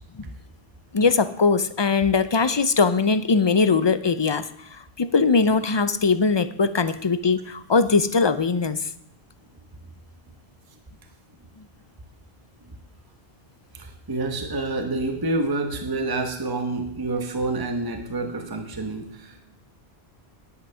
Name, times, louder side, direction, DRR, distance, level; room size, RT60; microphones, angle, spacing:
voice 1, 0.9-8.9, left 4 dB, 35° left, 13 dB, 0.4 m, -21 dB
voice 2, 13.7-19.4, right 2 dB, 20° right, 5 dB, 1.0 m, -28 dB
10.0 x 9.8 x 5.5 m, 0.73 s
omnidirectional pair, 1.1 m